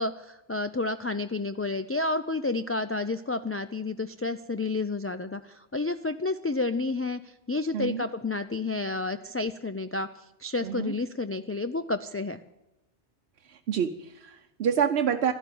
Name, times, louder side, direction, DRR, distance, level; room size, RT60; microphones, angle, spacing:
voice 1, 0.0-10.1 10.4-12.4, left 3 dB, 25° left, 10 dB, 0.3 m, -30 dB
voice 2, 7.7-8.0 10.6-10.9 13.7-15.3, right 8 dB, 85° right, 6 dB, 1.0 m, -27 dB
13.0 x 11.5 x 9.2 m, 0.97 s
omnidirectional pair, 1.0 m